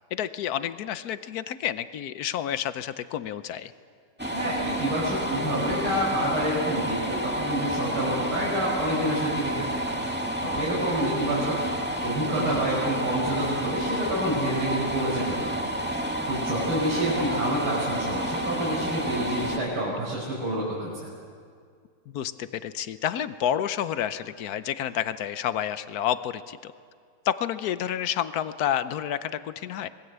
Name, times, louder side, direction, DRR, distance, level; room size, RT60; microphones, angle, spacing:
voice 1, 0.1-3.7 12.4-12.7 22.1-26.7 27.2-29.9, left 10 dB, 65° left, 13 dB, 0.9 m, -29 dB
sound 1, 4.2-19.6, equal, 5° right, 1.5 m, -30 dB
voice 2, 4.3-9.8 10.4-11.5 12.0-15.5 16.3-20.9, right 1 dB, 70° right, -6 dB, 6.6 m, -28 dB
26.0 x 21.0 x 8.1 m, 2.1 s
omnidirectional pair, 2.4 m